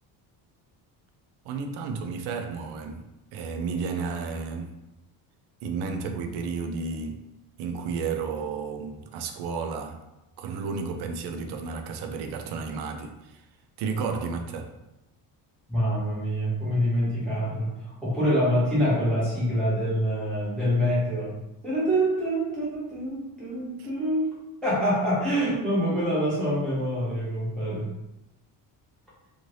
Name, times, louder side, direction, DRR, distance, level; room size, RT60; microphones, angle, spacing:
voice 1, 1.4-3.0 3.3-4.7 5.6-7.2 7.6-10.0 10.4-13.4 13.8-14.7 23.8-23.9, right 5 dB, 70° right, 0.5 m, -32 dB
voice 2, 15.7-17.7 18.0-21.4 21.6-24.2 24.6-27.9, equal, ahead, 0.6 m, -25 dB
2.7 x 2.5 x 3.1 m
cardioid pair, 165°, 41 cm